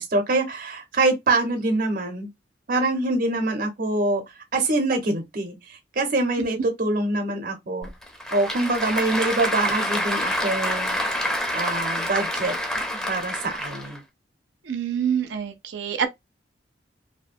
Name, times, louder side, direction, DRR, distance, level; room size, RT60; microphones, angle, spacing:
voice 1, 0.0-2.3 2.7-4.2 4.5-7.9 8.3-11.2 11.5-12.5 13.1-14.0, right 2 dB, 55° right, 0.7 m, -25 dB
Applause / Crowd, 7.8-14.0, equal, 5° left, 0.5 m, -27 dB
voice 2, 14.6-16.1, right 8 dB, 90° right, 0.5 m, -26 dB
2.6 x 2.1 x 2.5 m
head